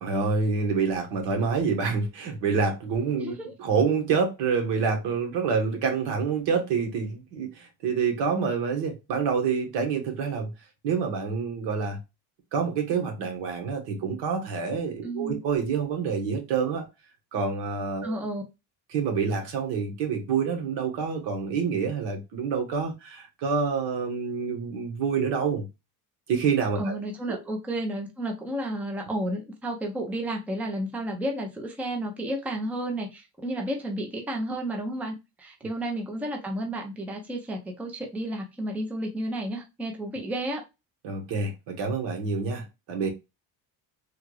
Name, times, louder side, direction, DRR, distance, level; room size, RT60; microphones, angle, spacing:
voice 1, 0.0-3.3 3.6-10.5 10.8-12.0 12.5-16.9 17.3-18.1 18.9-25.6 26.3-26.9 27.3-27.4 41.0-43.1, right 5 dB, 90° right, 1.3 m, -27 dB
voice 2, 3.2-3.5 15.0-15.4 18.0-18.4 26.8-40.6, right 1 dB, 5° right, 0.4 m, -32 dB
3.5 x 2.3 x 3.1 m
cardioid pair, 170°, 41 cm